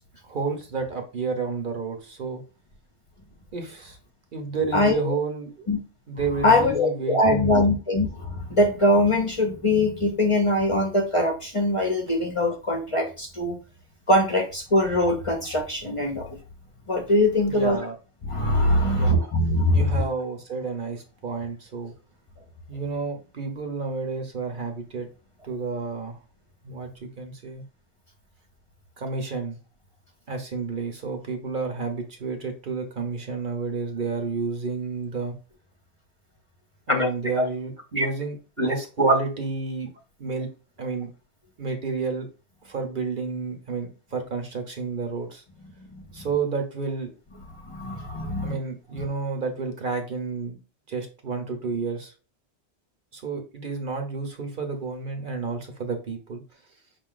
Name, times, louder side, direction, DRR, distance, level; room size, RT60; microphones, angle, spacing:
voice 1, 0.2-2.4 3.5-4.0 4.3-5.7 6.1-7.5 17.5-18.0 18.9-19.3 19.7-21.9 22.7-25.1 25.4-26.2 26.6-27.6 29.0-29.6 30.3-35.4 36.9-39.9 40.2-40.5 40.8-41.1 41.6-42.3 42.6-45.4 46.1-47.1 48.4-50.6 50.9-52.1 53.1-56.4, right 4 dB, 50° right, 4 dB, 0.9 m, -31 dB
voice 2, 4.7-5.1 5.7-5.8 6.4-13.6 14.1-16.4 16.9-17.8 18.2-20.0 36.9-37.1 37.4-37.5 37.9-38.1 38.6-39.2 45.9-46.3 47.6-48.6 48.9-49.1, left 1 dB, 35° left, 1 dB, 0.7 m, -22 dB
5.4 x 2.5 x 3.8 m, 0.33 s
omnidirectional pair, 1.1 m